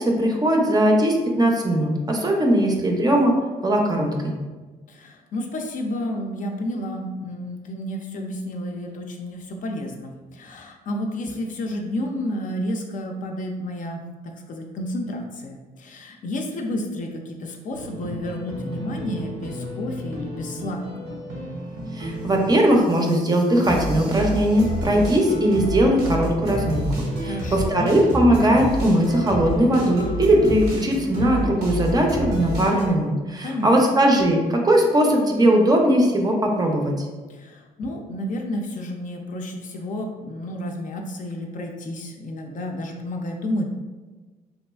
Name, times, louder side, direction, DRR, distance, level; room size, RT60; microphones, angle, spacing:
voice 1, 0.0-3.3 3.6-4.3 21.9-37.1, right 1 dB, 25° right, 1 dB, 0.5 m, -19 dB
voice 2, 4.9-21.2 27.2-27.9 33.4-33.9 37.3-43.6, left 1 dB, 55° left, 2 dB, 0.4 m, -31 dB
sound 1, 17.7-32.9, equal, 90° right, 0.7 m, -30 dB
3.0 x 2.4 x 2.3 m, 1.3 s
cardioid pair, 95°, 16 cm